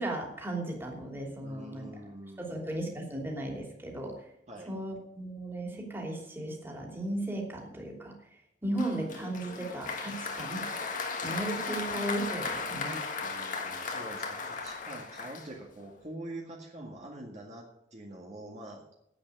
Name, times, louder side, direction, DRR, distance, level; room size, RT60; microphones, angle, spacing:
voice 1, 0.0-1.9 2.4-4.2 4.7-8.1 8.6-10.7 11.2-13.0, right 1 dB, 15° right, 0 dB, 3.0 m, -36 dB
voice 2, 1.4-2.6 4.5-4.7 13.2-18.8, right 1 dB, 40° right, -1 dB, 2.0 m, -45 dB
Applause, 8.8-15.9, left 4 dB, 45° left, 1.6 m, -36 dB
10.0 x 8.6 x 9.4 m, 0.79 s
head